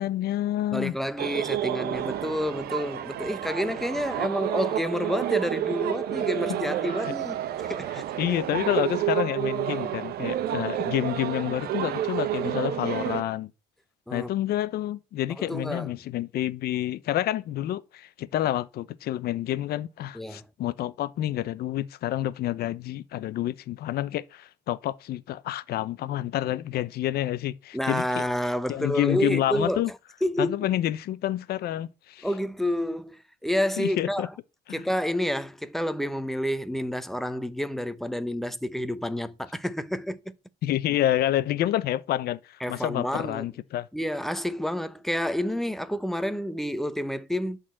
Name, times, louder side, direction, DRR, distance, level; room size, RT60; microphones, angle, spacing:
voice 1, 0.0-0.9 6.5-6.6 6.8-7.1 8.2-13.5 14.1-28.3 28.7-29.9 30.4-32.3 33.8-34.3 34.7-34.8 40.6-43.9, left 13 dB, 65° left, 0.8 m, -28 dB
voice 2, 0.7-7.4 7.7-8.3 14.1-14.3 15.4-15.9 20.1-20.5 27.7-29.8 30.2-30.6 32.2-34.3 34.7-40.2 42.6-43.5 43.9-47.6, equal, ahead, 0.9 m, -29 dB
sound 1, 1.2-13.2, right 12 dB, 70° right, 0.9 m, -30 dB
11.0 x 4.1 x 7.6 m
cardioid pair, 110°, 17 cm